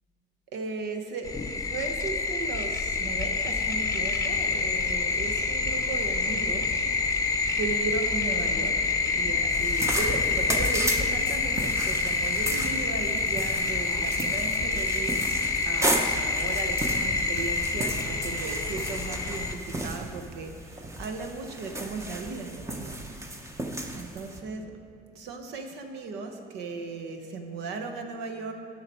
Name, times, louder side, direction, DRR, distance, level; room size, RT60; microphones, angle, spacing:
voice 1, 0.5-6.7 7.6-8.8 9.2-15.2 15.6-23.3 23.9-24.8 25.1-28.5, right 4 dB, 85° right, 5 dB, 1.1 m, -36 dB
sound 1, 1.2-19.6, left 4 dB, 20° left, 0.8 m, -27 dB
sound 2, 9.5-24.4, right 1 dB, 15° right, 0.9 m, -34 dB
14.5 x 5.8 x 4.5 m, 2.5 s
cardioid pair, 110°, 17 cm